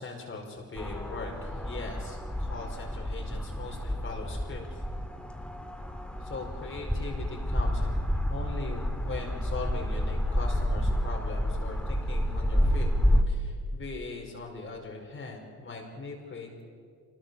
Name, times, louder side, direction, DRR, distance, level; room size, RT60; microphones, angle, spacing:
voice 1, 0.0-4.8 6.2-12.9 13.3-16.6, left 3 dB, 40° left, 0 dB, 5.0 m, -40 dB
sound 1, 0.7-13.2, equal, 5° left, 2.1 m, -29 dB
24.5 x 20.0 x 7.1 m, 2.1 s
cardioid pair, 90°, 30 cm